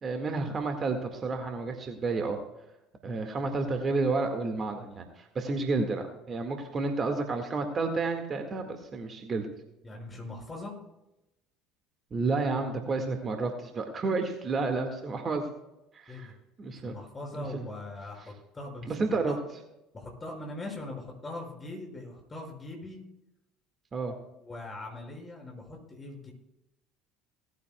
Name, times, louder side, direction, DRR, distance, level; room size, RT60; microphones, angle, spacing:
voice 1, 0.0-2.4 3.0-9.5 12.1-15.5 15.9-16.3 16.6-16.9 17.4-17.6 18.9-19.4 23.9-24.2, right 3 dB, 35° right, 4 dB, 1.8 m, -31 dB
voice 2, 9.8-10.8 16.1-16.3 16.7-19.4 19.9-23.0 24.4-26.3, left 2 dB, 20° left, 0 dB, 5.7 m, -41 dB
18.5 x 14.5 x 2.3 m, 0.90 s
figure-of-eight pair, 65°, 0 cm